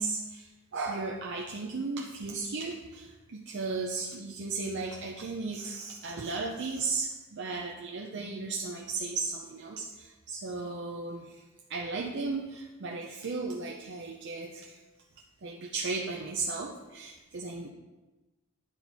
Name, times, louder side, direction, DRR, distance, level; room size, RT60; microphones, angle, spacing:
voice 1, 0.0-11.3 11.7-14.8 15.4-17.7, right 3 dB, 60° right, 0 dB, 0.6 m, -35 dB
9.8 x 4.5 x 4.1 m, 1.1 s
head